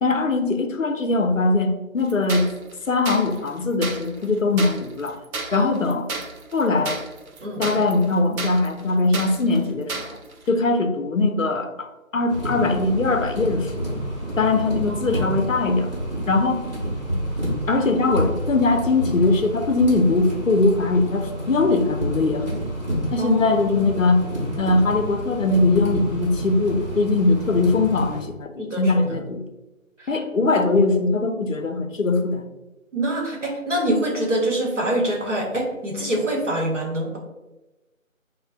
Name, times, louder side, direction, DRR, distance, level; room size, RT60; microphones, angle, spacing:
voice 1, 0.0-2.5 2.9-5.2 5.5-6.1 6.5-7.0 7.6-10.2 10.5-13.8 14.4-15.9 16.3-16.6 17.7-22.6 23.1-24.2 24.6-29.4 30.1-32.4, left 3 dB, 70° left, 6 dB, 0.5 m, -21 dB
sound 1, 2.1-10.5, right 3 dB, 85° right, 0.6 m, -33 dB
voice 2, 7.4-7.8 14.9-15.4 23.2-23.6 28.6-29.2 32.9-37.2, right 1 dB, 60° right, -1 dB, 1.0 m, -25 dB
sound 2, 12.3-28.2, equal, 30° right, 1.2 m, -29 dB
5.2 x 2.1 x 2.4 m, 1.0 s
figure-of-eight pair, 170°, 41 cm